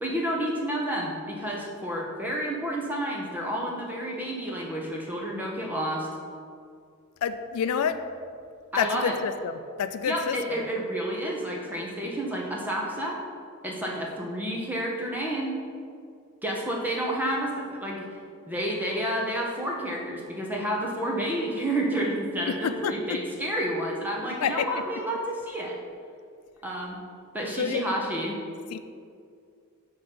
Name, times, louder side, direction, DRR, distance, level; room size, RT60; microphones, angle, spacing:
voice 1, 0.0-6.1 8.7-9.1 10.0-13.2 13.6-15.5 16.4-18.1 18.5-25.8 26.6-27.0 27.3-28.4, right 1 dB, 10° right, -2 dB, 0.8 m, -30 dB
voice 2, 7.2-8.0 8.8-10.6 22.6-23.2 24.4-24.6 27.6-27.8 28.7-28.8, left 7 dB, 90° left, 10 dB, 0.3 m, -28 dB
5.2 x 3.8 x 5.8 m, 2.3 s
head